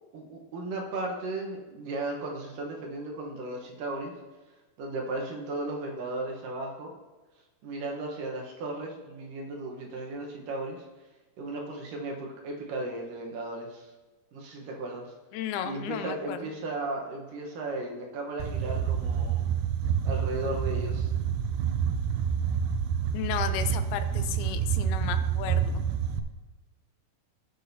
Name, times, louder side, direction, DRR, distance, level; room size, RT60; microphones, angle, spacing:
voice 1, 0.1-4.1 4.8-6.9 7.6-10.8 11.4-13.9 14.3-15.1 15.6-19.5 20.0-21.1, right 2 dB, 70° right, 0 dB, 2.5 m, -35 dB
voice 2, 15.3-16.5 23.1-25.8, left 9 dB, 85° left, 10 dB, 2.6 m, -34 dB
sound 1, 18.4-26.2, right 8 dB, 85° right, 1.8 m, -28 dB
17.0 x 6.2 x 2.7 m, 1.2 s
omnidirectional pair, 4.4 m